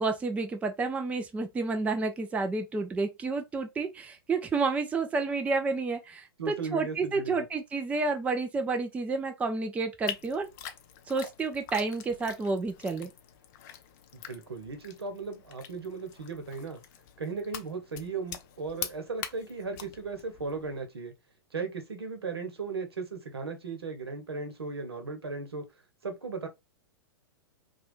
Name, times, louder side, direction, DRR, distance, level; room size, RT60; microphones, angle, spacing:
voice 1, 0.0-10.5 11.1-13.1, right 3 dB, 10° right, 0.4 m, -30 dB
voice 2, 6.4-7.5 14.1-16.8 17.2-21.1 21.5-25.6 26.0-26.5, right 4 dB, 85° right, 0.9 m, -36 dB
sound 1, 10.1-20.9, left 9 dB, 45° left, 0.5 m, -44 dB
3.0 x 2.3 x 3.0 m
hypercardioid pair, 110°, 13 cm